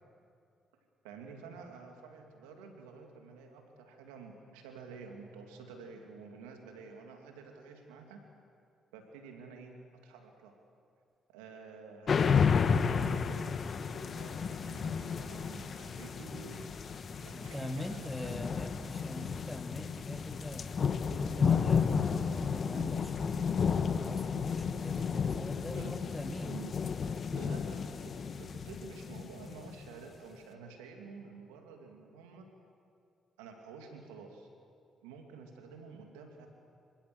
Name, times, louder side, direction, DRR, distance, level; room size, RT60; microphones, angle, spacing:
voice 1, 1.0-8.3 8.9-10.6 11.3-16.8 17.2-18.4 25.7-26.0 26.4-26.8 27.3-32.5 33.4-34.5 35.0-36.5, right 4 dB, 90° right, 3 dB, 2.4 m, -50 dB
sound 1, 12.1-29.9, left 6 dB, 50° left, 1.2 m, -32 dB
voice 2, 17.3-20.8 21.1-23.4 23.9-26.6, left 1 dB, 5° left, 6 dB, 2.0 m, -43 dB
25.5 x 16.0 x 7.7 m, 2.4 s
hypercardioid pair, 50°, 0 cm